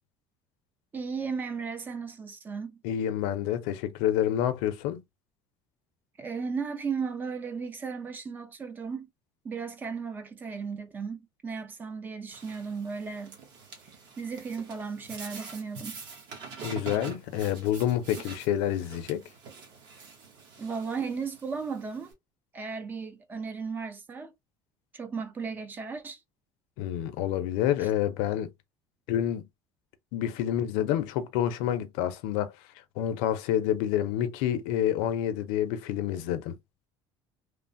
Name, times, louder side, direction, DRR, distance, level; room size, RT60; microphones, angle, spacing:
voice 1, 0.9-2.8 6.2-9.1 9.4-13.4 14.2-16.0 20.6-22.2 22.5-24.3 24.9-26.2 27.8-27.9, right 5 dB, 20° right, 0.3 m, -35 dB
voice 2, 2.8-5.0 16.6-19.2 26.8-28.5 29.1-29.4 30.1-32.5 33.0-36.6, left 11 dB, 85° left, 0.5 m, -28 dB
sound 1, 12.3-22.1, right 4 dB, 45° right, 1.0 m, -46 dB
3.1 x 2.0 x 2.5 m
cardioid pair, 175°, 10 cm